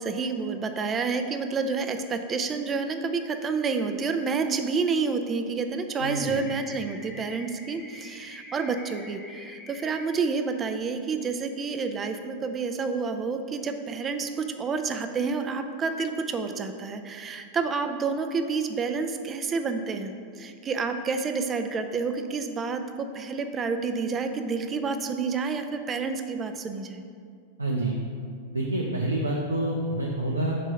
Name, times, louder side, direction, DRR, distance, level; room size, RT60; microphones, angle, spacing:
voice 1, 0.0-27.0, right 4 dB, 25° right, 7 dB, 0.4 m, -29 dB
sound 1, 6.0-10.0, left 2 dB, 20° left, 0.7 m, -46 dB
voice 2, 6.0-6.4 27.6-28.0 28.5-30.6, right 1 dB, 85° right, -2 dB, 0.5 m, -27 dB
5.0 x 3.6 x 5.5 m, 2.2 s
figure-of-eight pair, 90°, 0 cm